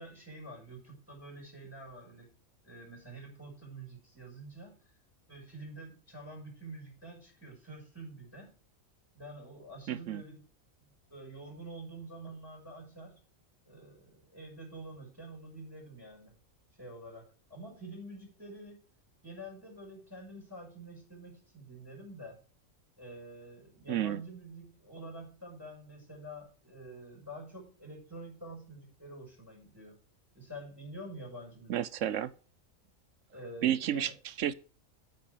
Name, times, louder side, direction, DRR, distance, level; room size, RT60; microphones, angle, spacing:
voice 1, 0.0-2.3 2.6-4.8 5.3-8.5 9.1-10.4 10.8-13.2 13.7-16.3 16.8-18.8 19.2-22.4 23.0-29.9 30.3-31.8 33.3-34.1, right 1 dB, 10° right, 6.0 m, -47 dB
voice 2, 9.9-10.2 23.9-24.2 31.7-32.3 33.6-34.5, right 11 dB, 70° right, 1.0 m, -31 dB
9.3 x 7.7 x 5.0 m
omnidirectional pair, 1.4 m